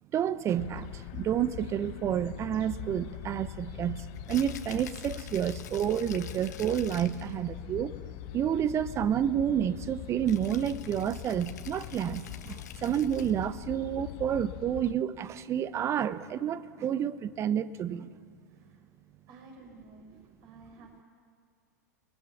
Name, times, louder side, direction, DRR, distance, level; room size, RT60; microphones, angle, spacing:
voice 1, 0.1-7.9 8.3-18.1, right 9 dB, 30° right, 0.9 m, -30 dB
sound 1, 0.6-14.9, left 14 dB, 50° left, 1.0 m, -42 dB
Rattle (instrument), 4.2-7.3 10.3-13.5, left 9 dB, 70° left, 1.6 m, -48 dB
voice 2, 18.5-18.9 19.3-21.0, right 3 dB, 45° right, 6.9 m, -53 dB
29.5 x 20.5 x 7.1 m
figure-of-eight pair, 95°, 9 cm